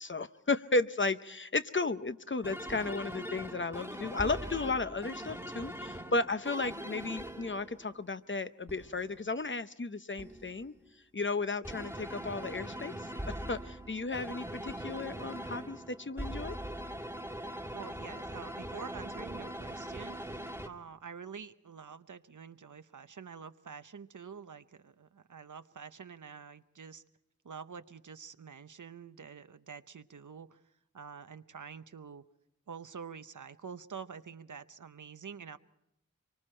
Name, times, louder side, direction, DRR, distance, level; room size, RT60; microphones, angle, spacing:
voice 1, 0.0-10.7 11.1-12.9 13.3-16.6, left 3 dB, 40° left, 11 dB, 0.7 m, -34 dB
sound 1, 2.4-8.0 8.7-9.3 10.2-10.8 11.6-20.7, right 1 dB, 5° right, 1.6 m, -42 dB
voice 2, 17.7-27.0 27.4-30.6 30.9-32.2 32.7-35.6, right 6 dB, 70° right, 12 dB, 0.8 m, -47 dB
25.0 x 24.0 x 4.4 m, 0.83 s
wide cardioid pair, 50°, 31 cm